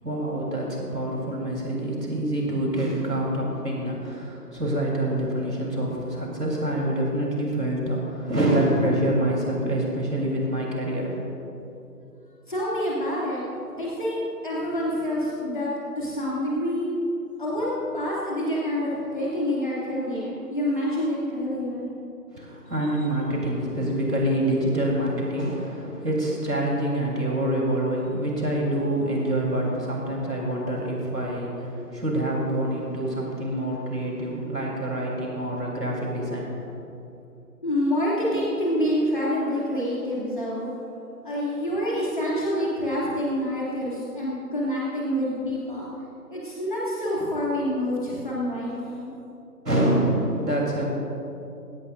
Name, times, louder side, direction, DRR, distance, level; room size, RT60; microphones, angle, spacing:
voice 1, 0.0-11.2 22.3-36.6 49.6-50.9, right 1 dB, 75° right, -2 dB, 3.7 m, -26 dB
voice 2, 12.5-13.4 13.8-16.9 17.4-17.7 17.9-21.9 37.6-40.7 41.2-45.9 46.3-49.1, equal, 30° left, -7 dB, 2.6 m, -27 dB
19.5 x 17.0 x 2.6 m, 2.8 s
figure-of-eight pair, 165°, 49 cm